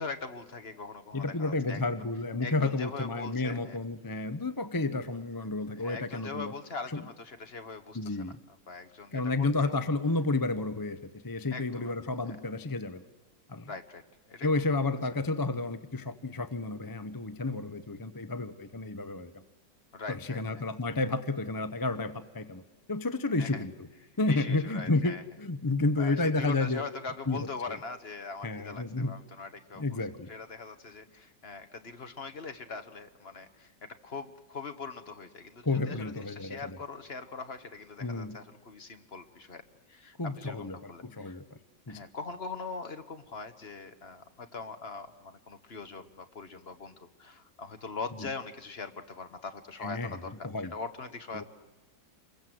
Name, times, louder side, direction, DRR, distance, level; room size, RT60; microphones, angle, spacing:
voice 1, 0.0-1.8 2.4-3.8 5.8-9.8 11.5-11.9 12.3-12.4 13.7-14.0 14.3-14.5 14.9-15.0 19.9-20.6 23.4-23.6 24.3-25.2 26.0-30.0 30.3-39.6 39.9-41.4 41.9-51.4, left 4 dB, 40° left, 8 dB, 1.4 m, -42 dB
voice 2, 1.1-6.5 6.9-7.0 7.9-8.4 9.1-11.0 11.2-13.0 13.5-13.7 14.4-19.3 20.1-22.6 22.9-23.7 24.2-26.8 27.3-27.8 28.4-29.1 29.8-30.3 35.6-36.8 38.0-38.4 40.2-41.4 41.9-42.0 49.8-50.2 50.4-50.7 51.3-51.4, left 3 dB, 20° left, 11 dB, 0.6 m, -31 dB
27.5 x 22.5 x 7.9 m, 1.2 s
omnidirectional pair, 1.9 m